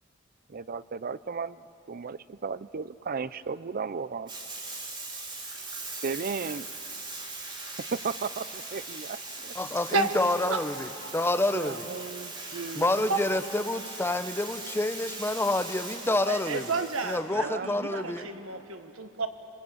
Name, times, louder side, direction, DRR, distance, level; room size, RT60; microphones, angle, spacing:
voice 1, 0.5-1.6 1.9-4.3 6.0-6.7 7.9-9.5 11.5-13.1 17.3-17.7, right 5 dB, 45° right, 16 dB, 0.5 m, -35 dB
Bathtub (filling or washing), 4.3-17.2, right 3 dB, 25° right, 3.6 m, -40 dB
voice 2, 9.6-11.9 12.8-16.7 17.0-18.3, left 2 dB, 10° left, 9 dB, 0.8 m, -28 dB
voice 3, 16.2-19.3, right 4 dB, 90° right, 7 dB, 1.5 m, -31 dB
26.0 x 21.5 x 8.7 m, 3.0 s
head